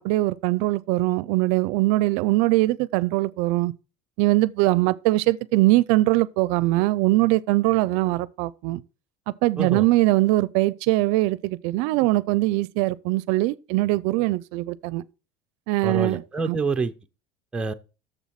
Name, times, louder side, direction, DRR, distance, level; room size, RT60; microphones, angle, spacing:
voice 1, 0.0-3.7 4.2-8.8 9.4-15.0 15.7-16.2 16.5-16.6, right 19 dB, 65° right, 0.4 m, -22 dB
voice 2, 15.8-16.9 17.5-17.7, right 4 dB, 10° right, 0.5 m, -27 dB
7.2 x 7.0 x 5.8 m
cardioid pair, 165°, 12 cm